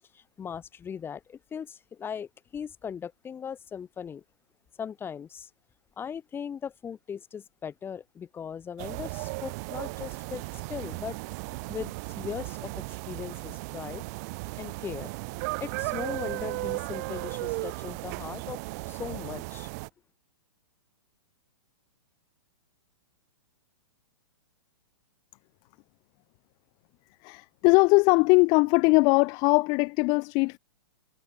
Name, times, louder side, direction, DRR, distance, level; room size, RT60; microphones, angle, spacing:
voice 1, 0.1-4.2 4.8-5.5 6.0-10.4 10.7-11.2 11.7-14.0 14.6-15.1 15.6-18.6 18.9-19.7, left 7 dB, 15° left, 3.0 m, -39 dB
sound 1, 8.8-19.9, right 27 dB, 40° right, 1.5 m, -36 dB
voice 2, 27.2-30.6, left 29 dB, 35° left, 0.7 m, -21 dB
figure-of-eight pair, 115°, 13 cm